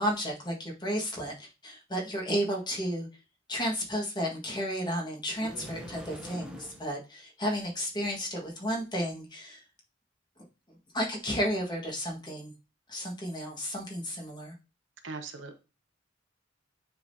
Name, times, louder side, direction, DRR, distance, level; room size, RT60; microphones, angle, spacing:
voice 1, 0.0-3.1 3.5-9.6 10.9-12.5 12.9-14.5, equal, 25° left, -1 dB, 1.6 m, -32 dB
sound 1, 5.4-6.9, right 1 dB, 5° right, 0.9 m, -43 dB
voice 2, 15.0-15.6, right 4 dB, 70° right, 6 dB, 0.9 m, -40 dB
9.5 x 3.7 x 2.7 m, 0.30 s
head